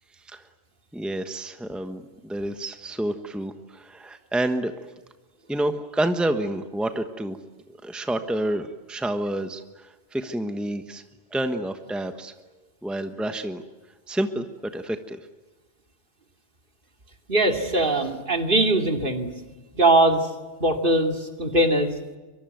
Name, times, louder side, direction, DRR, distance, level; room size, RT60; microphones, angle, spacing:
voice 1, 0.9-4.7 5.5-7.4 7.8-11.0 11.3-12.3 12.8-13.6 14.1-15.2, right 1 dB, ahead, 7 dB, 1.2 m, -29 dB
voice 2, 17.3-19.3 19.7-20.3 20.6-21.9, right 1 dB, 55° right, 4 dB, 2.8 m, -21 dB
23.5 x 23.5 x 9.3 m, 1.2 s
omnidirectional pair, 1.1 m